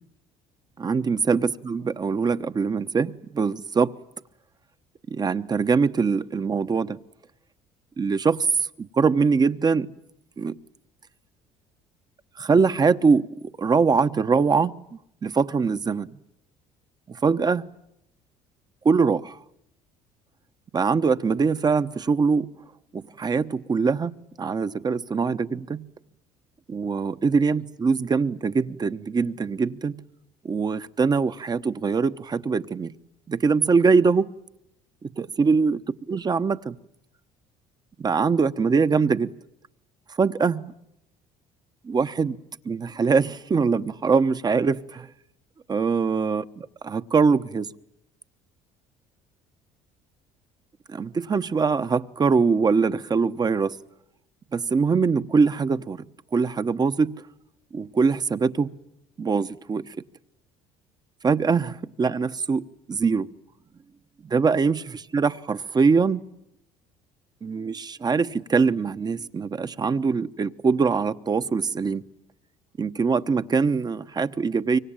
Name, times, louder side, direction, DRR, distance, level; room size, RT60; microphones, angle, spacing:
voice 1, 0.8-3.9 5.1-7.0 8.0-8.5 8.8-9.9 10.4-10.6 12.4-14.8 15.2-16.1 17.1-17.7 18.8-19.4 20.7-22.5 22.9-25.9 26.7-30.0 30.4-32.9 33.3-34.3 35.0-35.8 36.1-36.8 38.0-39.3 40.2-40.7 41.8-42.4 42.6-45.1 45.7-47.7 50.9-53.8 54.5-56.0 56.3-57.2 57.7-58.7 59.2-59.8 61.2-63.3 64.2-66.2 67.4-72.0 72.8-74.8, right 5 dB, 30° right, 1.1 m, -23 dB
25.0 x 24.0 x 9.0 m
supercardioid pair, 85°, 14 cm